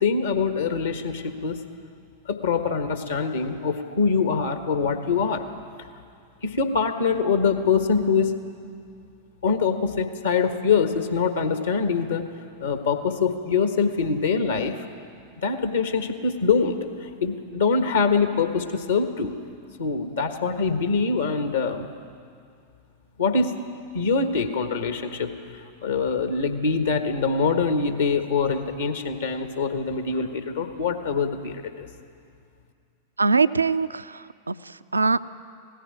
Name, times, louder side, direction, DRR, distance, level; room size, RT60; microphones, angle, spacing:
voice 1, 0.0-1.6 2.2-5.4 5.8-5.9 6.4-8.4 9.4-12.2 12.6-14.8 15.4-19.3 19.8-21.9 23.2-23.5 23.9-25.3 25.8-31.9, left 5 dB, 70° left, 7 dB, 1.4 m, -24 dB
voice 2, 33.2-35.3, right 4 dB, 80° right, 15 dB, 0.4 m, -23 dB
17.5 x 15.0 x 10.0 m, 2.4 s
figure-of-eight pair, 90°, 0 cm